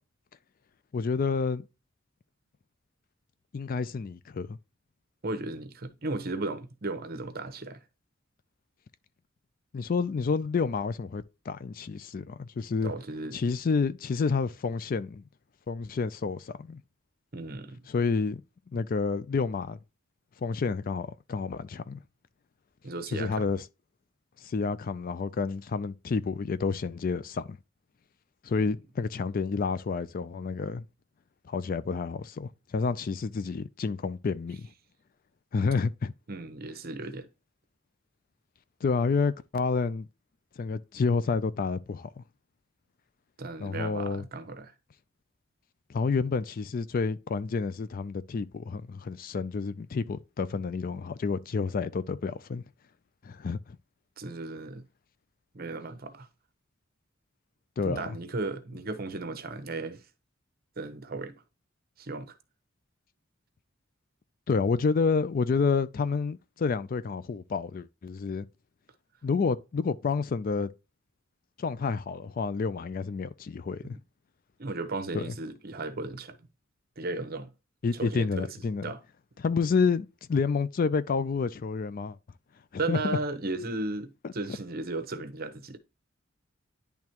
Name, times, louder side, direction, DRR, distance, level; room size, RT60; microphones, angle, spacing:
voice 1, 0.9-1.7 3.5-4.6 9.7-12.9 13.3-15.2 15.7-16.8 17.9-18.4 18.7-19.8 20.4-22.0 23.1-23.6 24.4-27.6 28.4-30.8 31.5-34.7 35.5-36.1 38.8-40.1 40.6-42.2 43.6-44.2 45.9-52.6 53.2-53.8 57.8-58.1 64.5-68.5 69.2-70.7 71.6-74.0 75.1-75.3 77.8-78.9 79.4-82.2 82.9-83.2 84.2-84.3, left 4 dB, 45° left, 0.4 m, -29 dB
voice 2, 5.2-7.8 12.8-13.4 17.3-17.8 22.8-23.5 28.6-28.7 36.3-37.3 43.4-44.7 54.2-54.8 55.5-56.3 57.8-60.0 60.8-61.4 62.0-62.3 73.9-74.0 74.6-76.4 77.0-77.5 77.9-78.5 78.8-79.0 82.8-85.8, right 2 dB, 50° right, 0.9 m, -35 dB
10.5 x 3.5 x 2.9 m
head